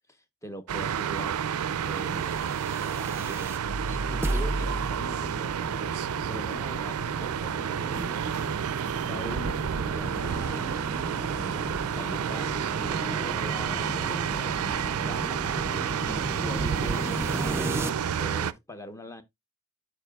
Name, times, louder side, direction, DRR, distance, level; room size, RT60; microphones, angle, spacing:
voice 1, 0.1-2.6 3.1-3.6 4.1-8.3 8.8-19.2, equal, 15° left, 0.8 m, -43 dB
sound 1, 0.7-18.5, right 8 dB, 85° right, 0.4 m, -30 dB
sound 2, 2.1-17.9, right 1 dB, 10° right, 0.5 m, -35 dB
12.5 x 4.7 x 2.3 m
head